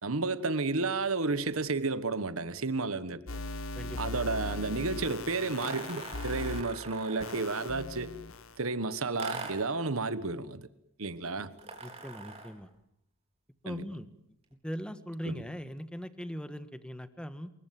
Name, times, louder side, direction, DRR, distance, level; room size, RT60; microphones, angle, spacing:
voice 1, 0.0-3.2 4.0-8.1 8.6-10.7 11.0-11.5 13.7-13.8 15.2-15.4, right 3 dB, 75° right, 1.4 m, -32 dB
sound 1, 3.3-6.6 7.2-8.5, left 2 dB, 70° left, 1.5 m, -39 dB
voice 2, 3.7-4.1 11.4-11.5 11.8-12.7 13.6-14.1 14.6-17.5, equal, 5° left, 1.6 m, -40 dB
sound 2, 5.6-7.6 9.2-9.8 11.6-12.6, right 3 dB, 30° right, 4.5 m, -42 dB
27.0 x 22.5 x 7.7 m
head